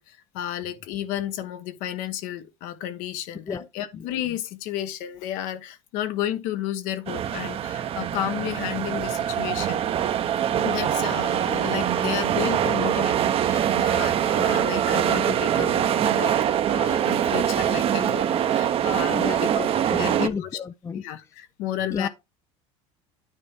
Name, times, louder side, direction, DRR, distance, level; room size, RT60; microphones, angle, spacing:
voice 1, 0.0-9.8 10.6-19.5 19.7-20.5 20.9-22.1, left 12 dB, 65° left, 1.2 m, -32 dB
sound 1, 7.1-20.3, right 10 dB, 40° right, 0.8 m, -23 dB
voice 2, 19.1-21.0 21.9-22.1, left 6 dB, 20° left, 0.5 m, -31 dB
9.6 x 3.3 x 5.8 m
supercardioid pair, 105°, 15 cm